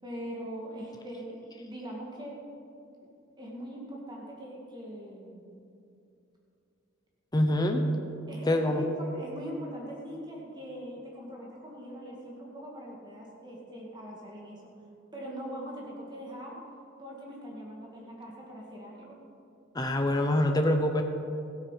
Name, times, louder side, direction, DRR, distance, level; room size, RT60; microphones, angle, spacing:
voice 1, 0.0-2.5 3.4-5.4 8.3-14.6 15.1-16.6 17.0-19.2, equal, 20° right, -3 dB, 2.0 m, -41 dB
voice 2, 7.3-7.8 8.4-8.8 19.7-21.0, left 1 dB, 20° left, 3 dB, 0.8 m, -25 dB
16.0 x 8.9 x 5.7 m, 2.6 s
head